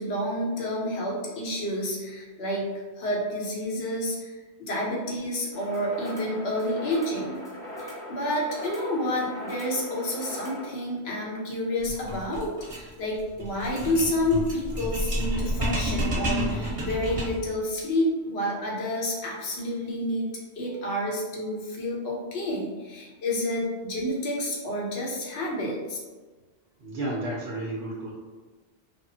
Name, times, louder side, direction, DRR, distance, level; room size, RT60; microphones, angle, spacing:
voice 1, 0.0-2.7 3.0-4.3 4.6-7.4 7.8-20.3 20.6-26.0, left 1 dB, 65° left, -3 dB, 1.0 m, -29 dB
sound 1, 5.5-10.7, equal, 5° left, 1.0 m, -40 dB
sound 2, 11.8-17.5, equal, 30° right, 1.1 m, -30 dB
voice 2, 26.8-28.1, right 1 dB, 70° right, -4 dB, 0.9 m, -32 dB
3.5 x 2.0 x 2.6 m, 1.3 s
omnidirectional pair, 1.2 m